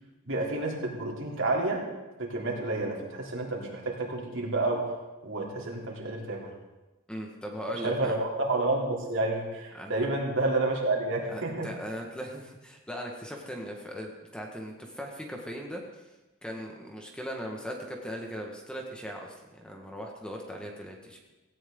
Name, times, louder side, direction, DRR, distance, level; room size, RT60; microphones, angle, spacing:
voice 1, 0.3-1.8 2.2-4.9 5.2-6.5 7.8-11.7, right 2 dB, 65° right, -1 dB, 3.4 m, -29 dB
voice 2, 7.1-8.1 9.7-10.1 11.3-16.1 16.4-21.2, equal, 5° left, 0 dB, 1.7 m, -39 dB
17.5 x 17.0 x 3.9 m, 1.1 s
head